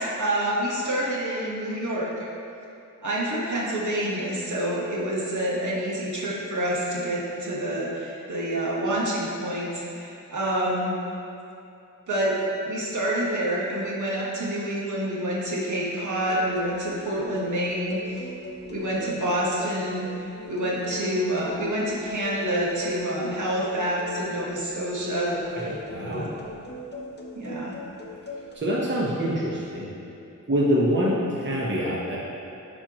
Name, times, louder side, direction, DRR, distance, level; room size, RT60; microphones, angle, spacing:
voice 1, 0.0-2.3 3.0-10.9 12.1-12.4 12.6-18.0 18.6-20.1 20.5-25.7 26.0-26.3 27.3-27.7, right 1 dB, 60° right, -5 dB, 1.4 m, -27 dB
sound 1, 16.2-28.6, left 2 dB, 30° left, 0.8 m, -39 dB
voice 2, 25.3-26.3 28.5-29.9 30.5-32.2, equal, 35° right, -5 dB, 1.1 m, -25 dB
9.6 x 4.5 x 3.0 m, 2.8 s
cardioid pair, 70°, 33 cm